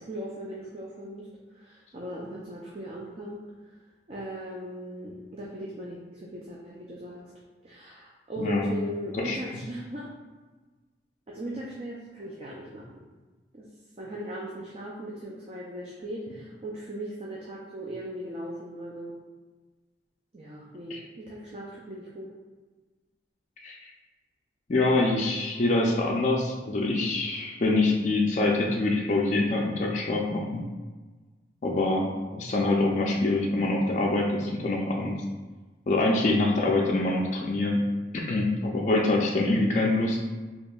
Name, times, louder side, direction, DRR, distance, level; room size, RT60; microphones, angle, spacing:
voice 1, 0.0-3.7 4.1-7.2 7.6-10.1 11.3-13.0 13.5-13.7 14.0-19.2 20.3-22.3, equal, 35° right, -4 dB, 0.4 m, -38 dB
voice 2, 8.4-8.7 9.2-9.4 20.9-21.0 23.6-23.8 24.7-30.6 31.6-35.1 35.9-37.8 38.1-40.2, left 2 dB, 40° left, -2 dB, 0.4 m, -25 dB
4.3 x 2.9 x 2.3 m, 1.3 s
head